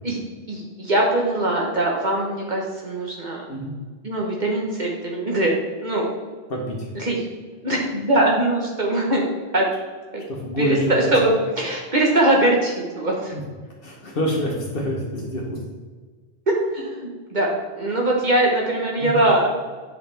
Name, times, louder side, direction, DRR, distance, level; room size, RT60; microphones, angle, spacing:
voice 1, 0.5-3.4 4.0-5.5 5.8-6.1 7.0-7.2 7.6-9.2 9.5-9.7 10.1-10.2 10.6-13.3 16.5-17.5 17.8-19.5, right 1 dB, 50° right, -2 dB, 1.2 m, -21 dB
voice 2, 6.5-6.9 10.3-11.1 13.3-13.4 13.8-15.6 19.0-19.2, equal, 65° left, -2 dB, 1.3 m, -26 dB
8.3 x 5.8 x 3.4 m, 1.4 s
omnidirectional pair, 1.0 m